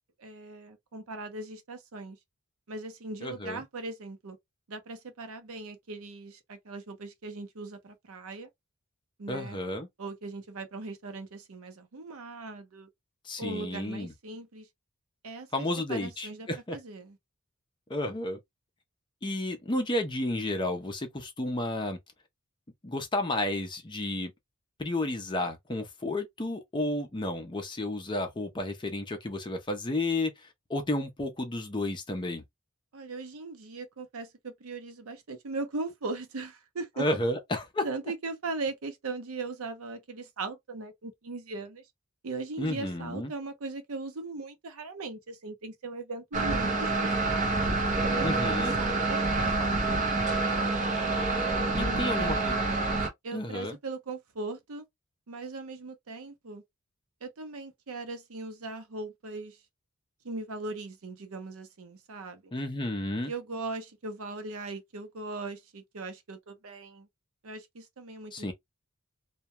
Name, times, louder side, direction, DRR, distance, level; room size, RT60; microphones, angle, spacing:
voice 1, 0.2-2.2 2.7-4.4 4.7-8.5 9.2-9.6 10.0-12.9 13.4-14.7 15.2-17.2 32.9-37.1 37.8-41.9 42.2-47.5 48.0-50.3 51.8-52.7 53.2-54.8 55.3-56.6 57.2-59.6 60.2-62.5 63.3-67.1 67.4-68.5, right 3 dB, 75° right, 0.6 m, -39 dB
voice 2, 3.2-3.6 9.3-9.9 13.2-14.1 15.5-16.8 17.9-18.4 19.2-22.0 22.8-24.3 24.8-30.3 30.7-32.4 37.0-37.8 42.6-43.3 48.2-48.8 51.8-52.5 53.3-53.8 62.5-63.3 68.3-68.5, left 1 dB, 20° left, 0.5 m, -32 dB
sound 1, 46.3-53.1, right 3 dB, 35° right, 0.6 m, -27 dB
2.2 x 2.1 x 2.7 m
head